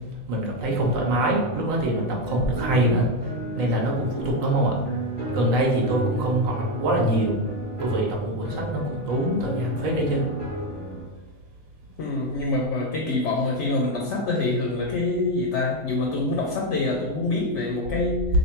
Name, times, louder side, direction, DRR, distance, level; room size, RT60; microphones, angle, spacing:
voice 1, 0.3-3.1 3.6-4.7 5.3-7.3 7.8-10.2, right 1 dB, 75° right, 0 dB, 1.2 m, -24 dB
sound 1, 0.6-11.0, right 1 dB, 10° right, 1.2 m, -33 dB
voice 2, 5.9-6.2 12.0-18.3, left 2 dB, 65° left, 1 dB, 0.8 m, -26 dB
3.2 x 2.5 x 4.4 m, 1.1 s
omnidirectional pair, 1.4 m